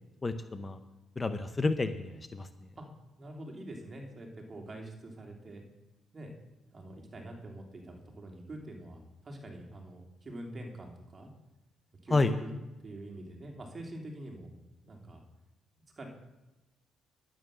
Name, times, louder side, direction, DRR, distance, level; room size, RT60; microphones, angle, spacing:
voice 1, 0.2-0.8 1.2-2.5 12.1-12.3, left 3 dB, 25° left, 9 dB, 0.8 m, -30 dB
voice 2, 3.2-5.6 6.1-6.3 6.7-11.3 12.0-12.5 12.8-14.5 14.8-15.2 16.0-16.1, right 1 dB, 35° right, 2 dB, 2.7 m, -45 dB
11.0 x 9.1 x 6.2 m, 1.0 s
cardioid pair, 90°, 0 cm